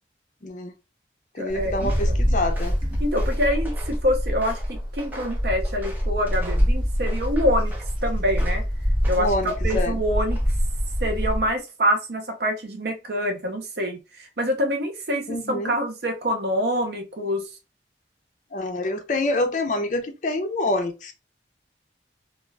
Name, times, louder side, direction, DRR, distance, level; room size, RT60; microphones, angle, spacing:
voice 1, 0.4-0.7 1.3-2.8 9.2-10.0 15.3-15.7 18.5-21.1, left 2 dB, 45° left, 0.5 m, -26 dB
voice 2, 1.4-2.1 3.0-7.7 8.0-8.6 9.1-10.4 11.0-17.5, equal, 60° right, 0.7 m, -26 dB
Wind, 1.5-11.5, equal, 30° right, 1.1 m, -25 dB
Walk footsteps, 1.8-2.1 2.5-4.0 4.4-6.7 7.1-7.9 8.4-8.7 9.0-9.9 10.3-10.7, right 2 dB, 10° right, 0.6 m, -42 dB
2.3 x 2.3 x 3.2 m
head